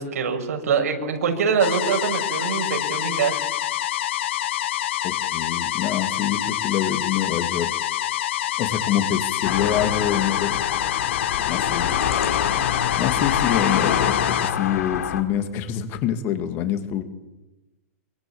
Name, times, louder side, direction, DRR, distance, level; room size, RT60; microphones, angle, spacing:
voice 1, 0.0-3.4, right 6 dB, 80° right, 4 dB, 6.8 m, -24 dB
sound 1, 1.6-14.5, left 13 dB, 50° left, 1.5 m, -26 dB
voice 2, 5.0-7.7 8.6-10.5 11.5-11.9 13.0-17.0, left 10 dB, 25° left, 9 dB, 2.4 m, -26 dB
sound 2, 9.4-15.2, left 8 dB, 80° left, 3.9 m, -25 dB
25.5 x 24.5 x 8.8 m, 1.0 s
supercardioid pair, 170°, 8 cm